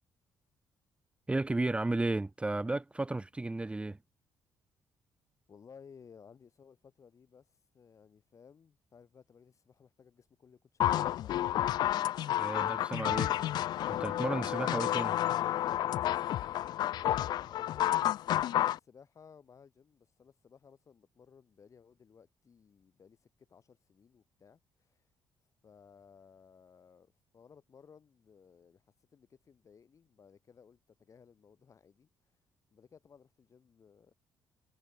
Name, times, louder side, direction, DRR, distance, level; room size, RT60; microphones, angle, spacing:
voice 1, 1.3-4.0 12.4-13.3 13.9-15.2, right 2 dB, 15° right, 0.9 m, -33 dB
voice 2, 5.5-11.8 16.7-25.0 25.6-28.8 29.1-32.1 32.7-34.1, left 6 dB, 45° left, 4.9 m, -59 dB
sound 1, 10.8-18.8, left 12 dB, 75° left, 0.6 m, -30 dB
cardioid pair, 85°, 7 cm